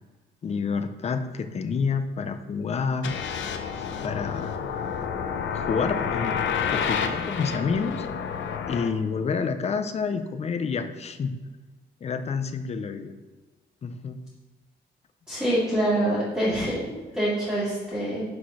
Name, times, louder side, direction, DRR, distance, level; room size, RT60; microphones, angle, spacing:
voice 1, 0.4-3.1 4.0-4.6 5.5-6.4 6.7-8.1 8.7-11.3 12.0-13.1 13.8-14.2, left 5 dB, 35° left, 8 dB, 0.5 m, -28 dB
sound 1, 3.0-8.9, left 7 dB, 85° left, 0.7 m, -29 dB
voice 2, 15.3-18.3, right 1 dB, 5° right, -12 dB, 2.3 m, -25 dB
6.3 x 4.9 x 5.7 m, 1.3 s
wide cardioid pair, 160°, 19 cm